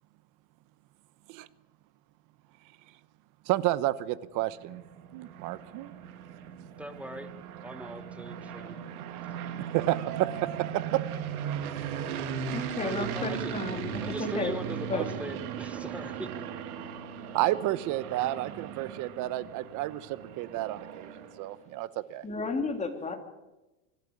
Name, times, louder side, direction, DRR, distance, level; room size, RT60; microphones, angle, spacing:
voice 1, 3.5-4.8 5.1-5.9 9.7-11.0 17.3-22.2, right 15 dB, 45° right, 17 dB, 1.0 m, -31 dB
sound 1, 4.4-21.6, right 8 dB, 75° right, 2.7 m, -38 dB
voice 2, 6.8-7.3 7.6-8.8 12.8-16.5, right 1 dB, 5° right, 9 dB, 1.4 m, -41 dB
voice 3, 12.5-14.5 14.9-15.0 22.2-23.2, left 3 dB, 15° left, 4 dB, 2.9 m, -33 dB
25.5 x 12.0 x 8.7 m, 1.0 s
supercardioid pair, 130°, 45 cm